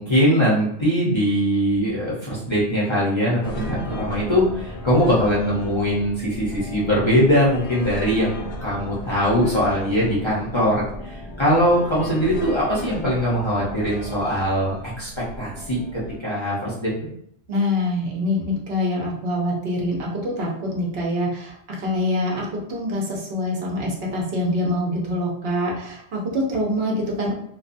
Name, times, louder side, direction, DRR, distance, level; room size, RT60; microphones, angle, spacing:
voice 1, 0.0-15.1 15.4-16.9, equal, 30° left, -8 dB, 0.6 m, -21 dB
sound 1, 3.4-16.2, left 1 dB, 70° left, 0.9 m, -35 dB
voice 2, 17.5-27.3, left 1 dB, 65° right, -2 dB, 0.9 m, -25 dB
2.7 x 2.2 x 2.5 m, 0.71 s
omnidirectional pair, 1.1 m